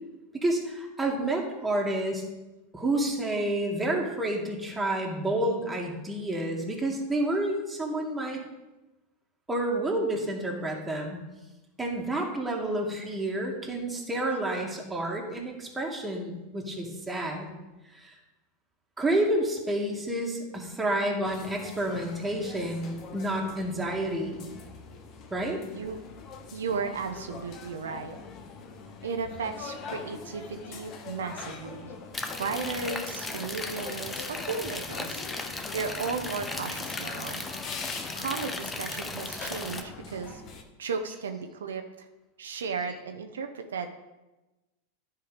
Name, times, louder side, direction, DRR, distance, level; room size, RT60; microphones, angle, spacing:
voice 1, 0.3-2.2 2.7-8.4 9.5-11.2 11.8-17.5 17.9-18.2 19.0-24.4 25.3-25.6, right 1 dB, 10° right, -1 dB, 2.1 m, -29 dB
sound 1, 21.2-40.6, left 5 dB, 45° left, 1.2 m, -43 dB
voice 2, 25.7-26.0 26.5-28.2 29.0-32.0 32.4-35.2 35.5-37.4 38.1-40.4 40.8-42.1 42.4-43.9, right 5 dB, 85° right, 6 dB, 0.7 m, -35 dB
sound 2, 32.1-39.8, left 3 dB, 15° left, 0.9 m, -36 dB
10.5 x 4.8 x 5.0 m, 1.1 s
hypercardioid pair, 105°, 0 cm